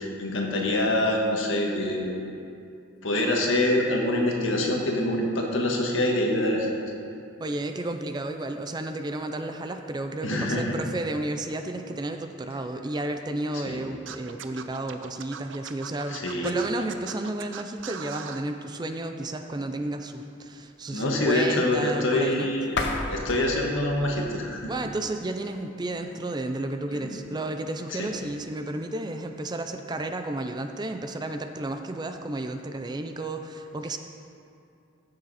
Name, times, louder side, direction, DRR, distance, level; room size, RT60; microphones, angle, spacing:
voice 1, 0.0-2.1 3.0-6.7 10.2-10.7 13.6-13.8 16.1-16.5 20.9-22.8 23.1-24.7 26.9-27.2 28.0-28.1, left 1 dB, 75° left, 0 dB, 1.5 m, -25 dB
voice 2, 7.4-22.5 24.7-34.0, right 2 dB, 20° right, 6 dB, 0.4 m, -32 dB
Scratching (performance technique), 14.1-18.4, right 7 dB, 70° right, 0.6 m, -39 dB
sound 1, 22.6-25.5, left 2 dB, 55° left, 0.9 m, -34 dB
15.5 x 6.7 x 4.1 m, 2.5 s
head